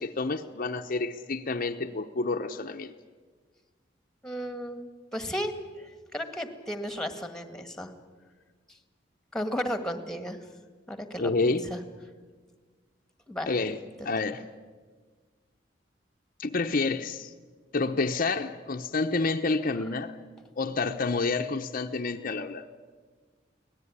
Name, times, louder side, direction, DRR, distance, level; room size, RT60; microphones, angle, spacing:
voice 1, 0.0-2.9 11.2-11.6 13.5-13.8 14.0-14.4 16.4-17.3 17.7-20.2 20.6-22.7, left 3 dB, 50° left, 5 dB, 0.8 m, -29 dB
voice 2, 4.2-5.5 5.8-7.9 9.3-10.4 10.9-11.3 11.7-11.8 13.3-13.5, equal, 5° left, 8 dB, 1.7 m, -34 dB
24.0 x 18.0 x 9.7 m, 1.5 s
head